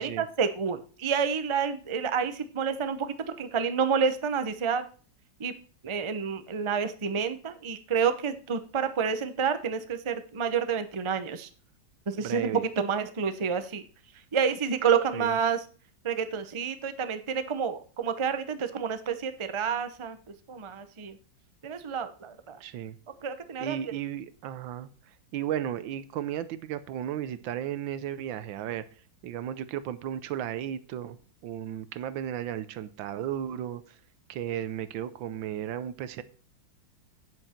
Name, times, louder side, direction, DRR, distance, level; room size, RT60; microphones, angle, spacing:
voice 1, 0.0-4.9 5.4-5.5 5.8-11.5 12.1-13.8 14.3-15.6 16.0-20.2 20.5-21.2 21.6-22.6 23.2-23.8, right 6 dB, 35° right, 9 dB, 0.4 m, -29 dB
voice 2, 12.1-12.7 15.1-15.4 22.6-23.0 23.6-24.9 25.3-28.8 29.2-31.2 31.4-34.0 34.3-36.2, right 10 dB, 85° right, 14 dB, 1.5 m, -34 dB
9.9 x 7.9 x 4.4 m, 0.40 s
omnidirectional pair, 2.0 m